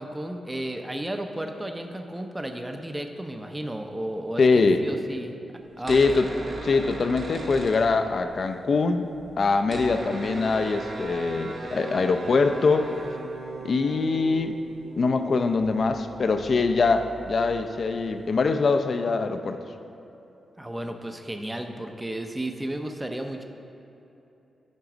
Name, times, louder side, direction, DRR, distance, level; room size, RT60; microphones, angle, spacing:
voice 1, 0.0-5.3 5.8-6.2 20.6-23.4, right 1 dB, 15° right, 5 dB, 0.6 m, -33 dB
voice 2, 4.4-4.8 5.9-6.3 6.6-9.1 9.4-12.9 13.6-14.6 15.0-19.6, left 4 dB, 55° left, 8 dB, 0.5 m, -23 dB
sound 1, 5.7-8.5 8.7-8.8 9.0-18.4, right 2 dB, 55° right, 0.9 m, -39 dB
10.5 x 3.9 x 6.1 m, 2.9 s
cardioid pair, 95°, 0 cm